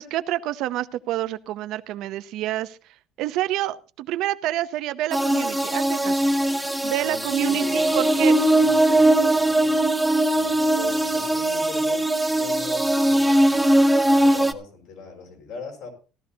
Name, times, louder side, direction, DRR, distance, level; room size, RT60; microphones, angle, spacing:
voice 1, 0.0-2.8 3.2-6.2 6.8-8.3, right 14 dB, 60° right, 12 dB, 0.6 m, -28 dB
sound 1, 5.1-14.5, right 1 dB, ahead, 0.6 m, -20 dB
voice 2, 7.0-9.9 10.3-13.6 14.1-15.9, left 4 dB, 65° left, 3 dB, 5.2 m, -40 dB
16.5 x 12.5 x 2.8 m, 0.35 s
cardioid pair, 160°, 0 cm